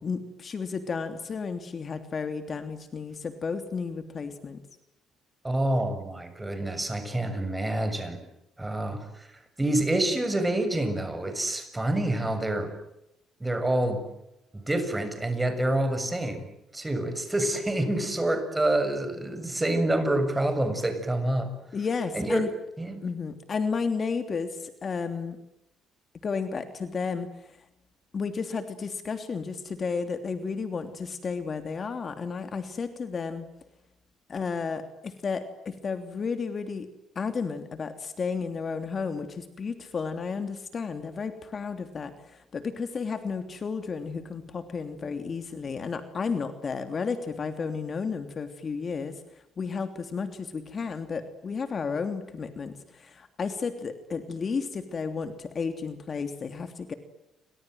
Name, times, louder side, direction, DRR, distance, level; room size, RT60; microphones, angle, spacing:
voice 1, 0.0-4.6 21.7-22.5 23.0-25.4 26.2-27.5 28.1-33.5 34.3-36.9 37.1-49.2 49.6-56.9, left 5 dB, 35° left, 8 dB, 3.0 m, -32 dB
voice 2, 5.4-8.2 8.6-9.3 9.6-12.7 13.4-14.1 14.5-16.5 16.7-21.5 22.1-22.5 22.8-23.1, right 1 dB, 10° right, 9 dB, 7.0 m, -27 dB
30.0 x 25.5 x 7.8 m, 0.86 s
cardioid pair, 110°, 0 cm